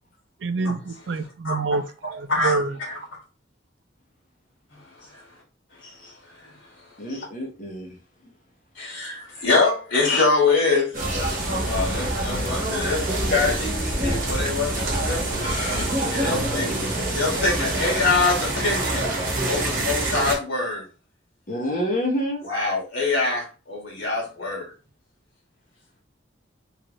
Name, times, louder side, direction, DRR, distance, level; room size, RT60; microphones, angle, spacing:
voice 1, 0.4-2.8, right 4 dB, 65° right, 0.4 m, -27 dB
voice 2, 2.3-2.6 2.8-3.0 4.7-5.2 5.8-6.1 6.4-6.5 7.1-7.3 8.7-10.9 11.6-15.5 16.1-16.7 17.1-19.1 19.5-20.8 22.5-24.7, left 3 dB, 80° left, 1.6 m, -24 dB
voice 3, 7.0-8.0 8.2-8.3 15.4-16.8 21.5-22.5, left 1 dB, 45° left, 0.9 m, -29 dB
sound 1, 10.9-20.3, right 1 dB, 45° right, 1.1 m, -26 dB
3.2 x 2.5 x 3.0 m
head